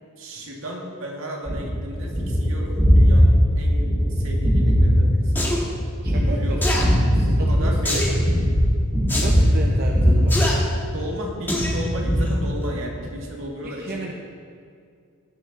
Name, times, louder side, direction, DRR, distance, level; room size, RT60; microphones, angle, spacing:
voice 1, 0.2-5.4 6.3-6.8 7.2-8.6 10.9-14.1, equal, 70° right, 0 dB, 1.9 m, -34 dB
Gunshot gunfire, 1.5-11.1 11.6-13.0, equal, 15° right, 3.1 m, -19 dB
sound 1, 5.4-5.6 6.6-6.8 7.9-8.2 9.1-9.3 10.3-10.5 11.5-11.8 12.2-12.3, left 1 dB, 10° left, 1.5 m, -24 dB
voice 2, 6.0-8.1 9.2-10.4 13.6-14.1, right 2 dB, 45° right, 0 dB, 0.7 m, -33 dB
17.5 x 6.3 x 4.1 m, 2.3 s
head